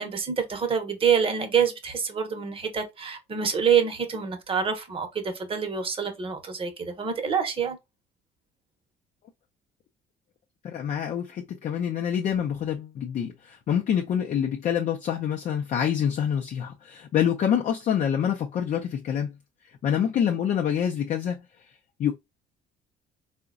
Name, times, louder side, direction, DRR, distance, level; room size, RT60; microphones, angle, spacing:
voice 1, 0.0-7.8, right 7 dB, 30° right, 0.7 m, -26 dB
voice 2, 10.6-19.3 19.8-21.4 22.0-22.1, left 9 dB, 50° left, 0.5 m, -26 dB
3.7 x 2.1 x 2.4 m
cardioid pair, 110°, 17 cm